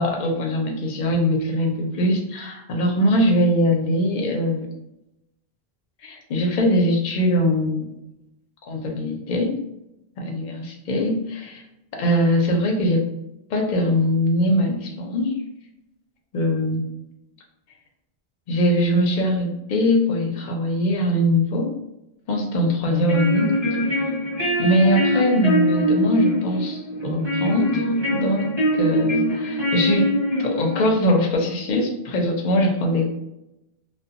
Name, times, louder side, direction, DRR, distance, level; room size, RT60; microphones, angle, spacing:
voice 1, 0.0-4.7 6.0-7.8 8.7-9.5 10.2-11.6 12.0-13.1 13.5-15.3 16.3-16.9 18.5-21.7 22.3-23.5 24.6-27.8 28.1-33.1, equal, 55° left, 1 dB, 0.6 m, -21 dB
sound 1, 22.8-30.9, equal, 25° right, 1.0 m, -23 dB
2.6 x 2.2 x 2.4 m, 0.88 s
omnidirectional pair, 1.1 m